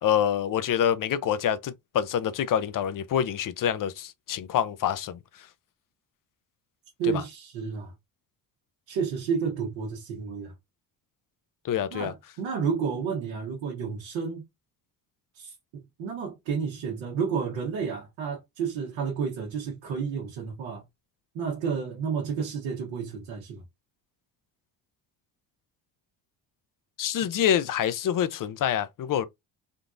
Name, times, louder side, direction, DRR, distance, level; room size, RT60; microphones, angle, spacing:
voice 1, 0.0-5.5 7.0-7.2 11.6-12.1 27.0-29.3, left 9 dB, 45° left, 0.6 m, -26 dB
voice 2, 7.0-7.9 8.9-10.5 11.9-14.4 15.3-20.8 21.3-23.6, right 6 dB, 85° right, 1.2 m, -31 dB
3.7 x 2.3 x 2.5 m
supercardioid pair, 65°, 44 cm